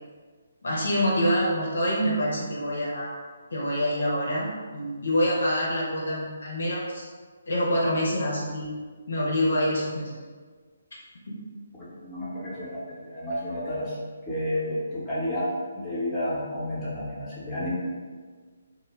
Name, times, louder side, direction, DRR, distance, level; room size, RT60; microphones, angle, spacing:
voice 1, 0.6-3.1 3.5-7.1 7.5-8.7 9.1-10.1 11.3-11.4, equal, 60° left, -4 dB, 0.5 m, -26 dB
voice 2, 11.8-14.0 14.3-15.5 15.7-17.7, left 1 dB, 10° left, -10 dB, 0.7 m, -31 dB
2.1 x 2.0 x 3.1 m, 1.5 s
figure-of-eight pair, 140°, 0 cm